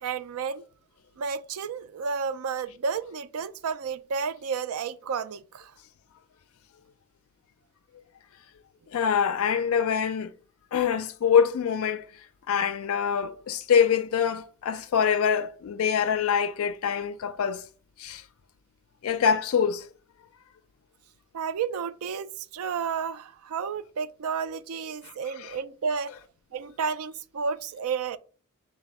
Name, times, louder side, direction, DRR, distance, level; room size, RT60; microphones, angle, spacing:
voice 1, 0.0-0.6 1.2-5.7 21.3-26.1 26.5-28.2, right 6 dB, 80° right, 0.4 m, -31 dB
voice 2, 8.9-10.3 10.7-12.1 12.5-17.6 18.0-18.2 19.0-19.9 25.0-25.1 25.4-25.5, left 7 dB, 75° left, 0.3 m, -25 dB
4.1 x 2.2 x 4.5 m
head